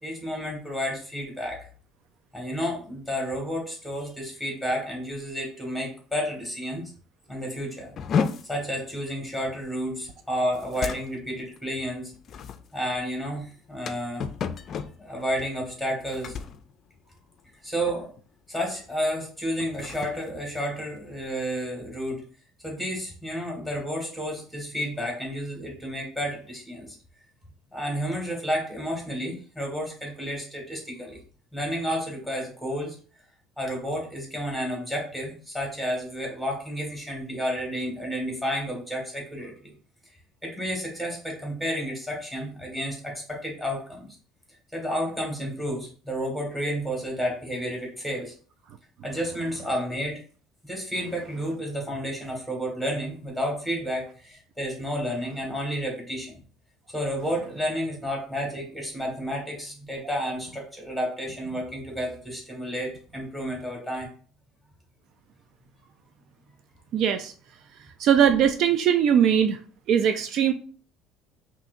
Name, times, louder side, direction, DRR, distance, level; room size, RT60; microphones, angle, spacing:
voice 1, 0.0-1.7 2.3-6.9 7.3-7.9 8.5-12.1 12.7-14.2 15.0-16.4 17.6-18.2 18.5-22.2 22.6-27.0 27.7-31.2 31.5-33.0 33.6-39.7 40.4-44.1 44.7-48.3 49.0-50.2 50.6-56.3 56.9-64.1, equal, 5° right, -1 dB, 1.8 m, -31 dB
Refrigerator fridge open interior bottle movement rummage, 8.0-17.6 17.9-18.3 18.6-18.9 19.5-21.4, left 6 dB, 45° left, 0.4 m, -34 dB
voice 2, 66.9-67.3 68.0-69.6 69.9-70.5, right 8 dB, 60° right, 9 dB, 0.3 m, -20 dB
5.5 x 2.7 x 2.6 m, 0.42 s
cardioid pair, 125°, 0 cm